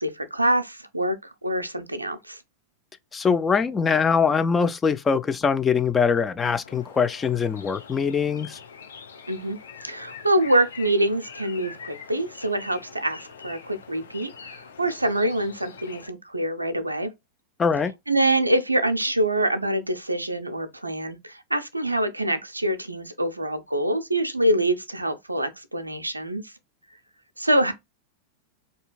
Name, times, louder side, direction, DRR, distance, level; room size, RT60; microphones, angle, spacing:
voice 1, 0.0-2.4 9.3-9.6 9.8-17.1 18.1-26.5 27.4-27.7, right 1 dB, 85° right, 0.4 m, -25 dB
voice 2, 3.1-8.6 17.6-17.9, left 6 dB, 20° left, 0.3 m, -22 dB
sound 1, 6.6-16.1, left 6 dB, 65° left, 0.8 m, -44 dB
4.3 x 2.7 x 2.3 m
figure-of-eight pair, 90°, 0 cm